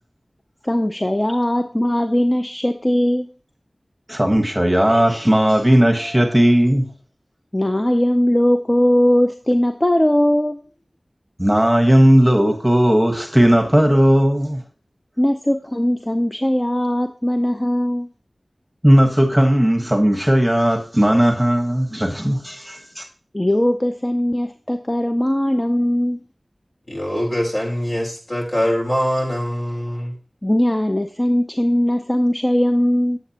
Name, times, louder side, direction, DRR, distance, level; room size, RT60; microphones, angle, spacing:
voice 1, 0.6-3.3 7.5-10.6 15.2-18.1 23.3-26.2 30.4-33.2, left 1 dB, 25° left, 0.6 m, -19 dB
voice 2, 4.1-6.9 11.4-14.6 18.8-23.0, equal, 5° right, 1.2 m, -16 dB
voice 3, 26.9-30.1, equal, 60° left, 3.5 m, -23 dB
8.3 x 7.8 x 2.8 m
wide cardioid pair, 45°, 0 cm